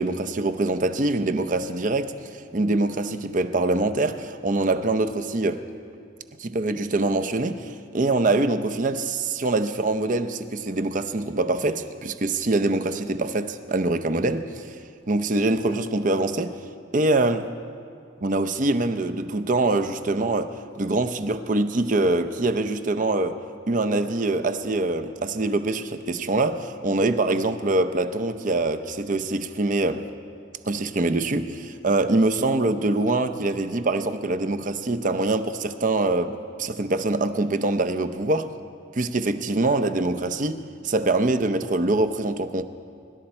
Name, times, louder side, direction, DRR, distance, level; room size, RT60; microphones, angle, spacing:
voice 1, 0.0-2.1 2.5-5.6 6.4-14.7 15.1-16.6 16.9-17.5 18.2-23.4 23.7-30.0 30.6-38.5 39.0-42.6, right 2 dB, 45° right, 0.6 m, -24 dB
24.5 x 12.0 x 4.4 m
head